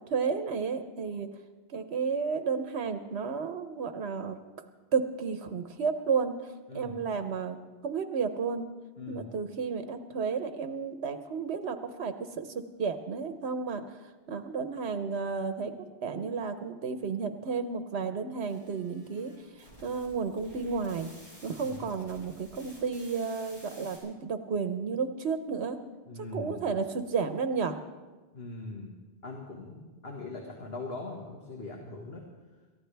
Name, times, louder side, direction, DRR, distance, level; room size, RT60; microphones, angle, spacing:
voice 1, 0.1-1.3 1.7-4.4 4.9-7.6 7.8-8.7 9.1-14.0 14.3-19.3 19.6-21.1 21.4-25.8 26.3-27.8, right 5 dB, 85° right, 8 dB, 1.1 m, -32 dB
sound 1, 18.4-24.0, equal, 35° left, 6.6 m, -53 dB
voice 2, 26.1-26.6 28.3-28.9 29.2-32.3, left 2 dB, 70° left, 0 dB, 1.9 m, -41 dB
27.5 x 14.0 x 3.4 m, 1.3 s
omnidirectional pair, 1.1 m